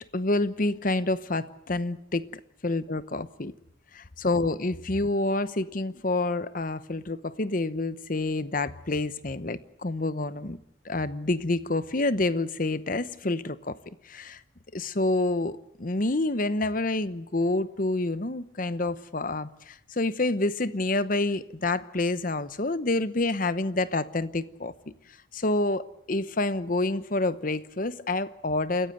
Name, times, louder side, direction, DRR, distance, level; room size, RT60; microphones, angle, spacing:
voice 1, 0.1-2.3 2.6-3.5 3.9-10.6 10.8-13.8 14.0-14.4 14.7-24.7 25.3-28.9, left 2 dB, 45° left, 0.9 m, -28 dB
28.5 x 15.0 x 8.0 m
head